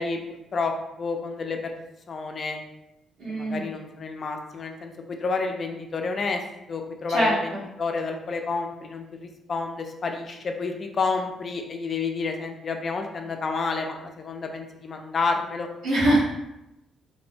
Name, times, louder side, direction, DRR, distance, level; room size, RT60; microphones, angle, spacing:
voice 1, 0.0-1.7 2.1-2.6 3.3-6.4 6.7-15.7, left 4 dB, 45° left, 4 dB, 0.4 m, -30 dB
voice 2, 3.2-3.6 7.1-7.6 15.8-16.2, right 1 dB, 90° right, -13 dB, 1.0 m, -22 dB
2.6 x 2.1 x 2.6 m, 0.89 s
cardioid pair, 90°, 0 cm